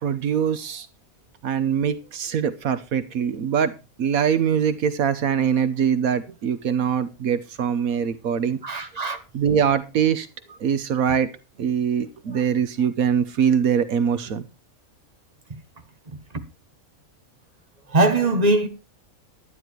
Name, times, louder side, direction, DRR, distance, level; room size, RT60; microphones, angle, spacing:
voice 1, 0.0-0.9 1.4-3.7 4.0-8.6 9.3-10.3 10.6-11.3 11.6-14.5, right 7 dB, 80° right, 1.4 m, -23 dB
voice 2, 8.6-9.2 17.9-18.7, right 2 dB, 30° right, 1.7 m, -20 dB
11.5 x 9.8 x 4.6 m
omnidirectional pair, 1.5 m